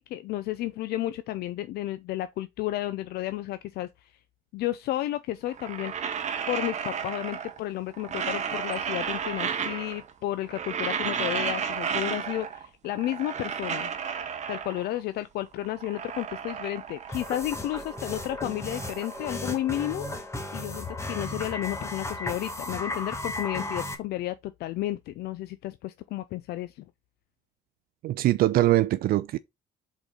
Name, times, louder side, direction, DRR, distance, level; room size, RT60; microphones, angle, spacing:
voice 1, 0.0-4.1 4.5-6.1 6.5-13.9 14.5-20.1 20.5-26.8, left 14 dB, 70° left, 0.5 m, -32 dB
sound 1, 5.5-7.6 7.9-10.1 10.4-12.7 12.9-15.0 15.5-17.5 17.8-20.0, right 7 dB, 45° right, 1.0 m, -33 dB
sound 2, 17.1-23.9, left 2 dB, 15° left, 1.2 m, -35 dB
voice 2, 28.0-29.4, right 15 dB, 65° right, 0.4 m, -22 dB
5.0 x 4.0 x 4.9 m
cardioid pair, 110°, 17 cm